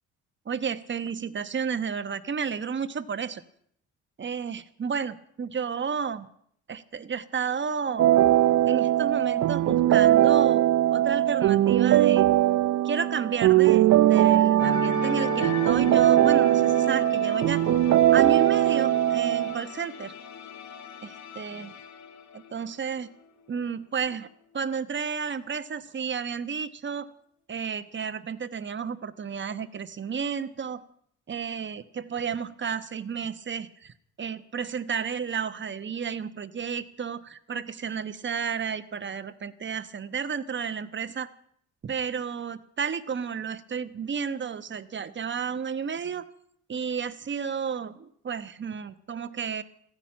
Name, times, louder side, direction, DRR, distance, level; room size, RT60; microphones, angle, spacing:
voice 1, 0.5-3.4 4.2-6.3 6.7-8.1 8.6-12.3 12.8-17.6 18.1-20.1 21.0-21.7 22.3-23.1 23.5-24.3 24.5-27.1 27.5-30.8 31.3-41.3 41.8-46.3 46.7-49.6, right 6 dB, 40° right, 11 dB, 1.1 m, -32 dB
sound 1, 8.0-19.6, right 13 dB, 60° right, 0.6 m, -20 dB
sound 2, 14.6-23.3 23.5-23.8, left 8 dB, 65° left, 1.3 m, -37 dB
15.0 x 10.0 x 8.5 m, 0.67 s
cardioid pair, 90°, 30 cm